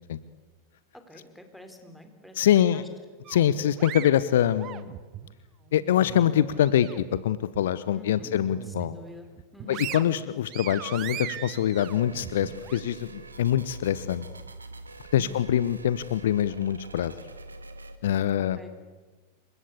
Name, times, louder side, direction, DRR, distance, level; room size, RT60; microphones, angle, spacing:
voice 1, 0.9-2.9 7.9-8.3 8.6-9.8 15.1-15.4 18.2-18.7, left 1 dB, ahead, 6 dB, 4.0 m, -47 dB
voice 2, 2.4-2.8 3.3-4.9 5.7-9.0 9.7-14.3 15.1-17.1 18.0-18.6, left 10 dB, 60° left, 16 dB, 0.9 m, -24 dB
sound 1, 3.2-5.3 5.7-7.2 7.5-7.7 8.2-9.0 9.4-12.8, right 12 dB, 35° right, 1.4 m, -39 dB
sound 2, 11.8-18.0, right 3 dB, 75° right, 2.1 m, -45 dB
28.0 x 23.5 x 8.4 m, 1.3 s
figure-of-eight pair, 90°, 0 cm